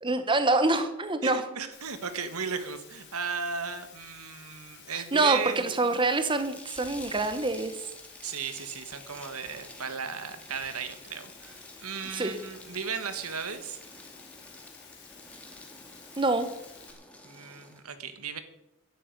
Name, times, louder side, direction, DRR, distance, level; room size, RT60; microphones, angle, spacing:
voice 1, 0.0-1.5 4.9-7.8 12.1-12.4 16.2-16.5, right 2 dB, 20° right, 9 dB, 1.0 m, -26 dB
voice 2, 1.2-5.9 8.2-13.8 17.2-18.4, right 5 dB, 85° right, 10 dB, 1.6 m, -36 dB
Water, 1.7-16.9, left 7 dB, 50° left, 3.8 m, -52 dB
sound 1, 6.3-17.8, left 1 dB, 5° left, 2.0 m, -49 dB
11.0 x 8.5 x 9.5 m, 0.87 s
head